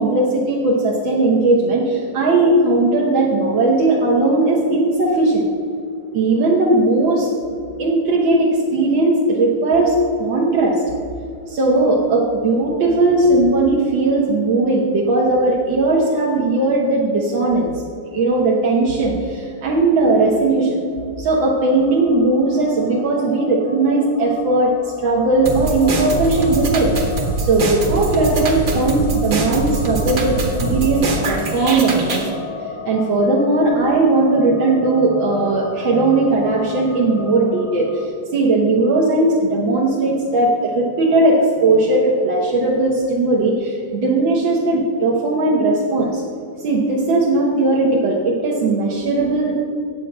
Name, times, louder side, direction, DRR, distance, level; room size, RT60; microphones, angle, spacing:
voice 1, 0.0-5.5 6.1-7.3 7.8-10.8 11.5-17.7 18.1-20.8 21.2-24.7 25.0-26.9 27.4-32.4 32.9-46.2 46.6-49.6, right 2 dB, 75° right, -4 dB, 2.0 m, -18 dB
sound 1, 21.7-38.1, left 4 dB, 85° left, 0.4 m, -35 dB
sound 2, 25.5-32.3, right 2 dB, 55° right, 2.0 m, -23 dB
9.8 x 8.5 x 6.0 m, 2.5 s
omnidirectional pair, 2.2 m